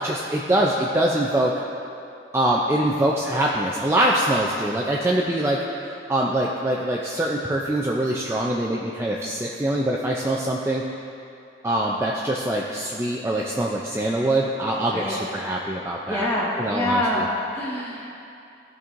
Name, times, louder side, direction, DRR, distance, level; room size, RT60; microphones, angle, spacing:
voice 1, 0.0-1.5 2.3-5.6 5.8-10.8 11.6-16.3 16.6-17.3, right 1 dB, 15° right, -3 dB, 0.4 m, -24 dB
voice 2, 16.1-18.2, left 1 dB, 10° left, -5 dB, 1.2 m, -26 dB
15.0 x 5.4 x 2.5 m, 2.7 s
head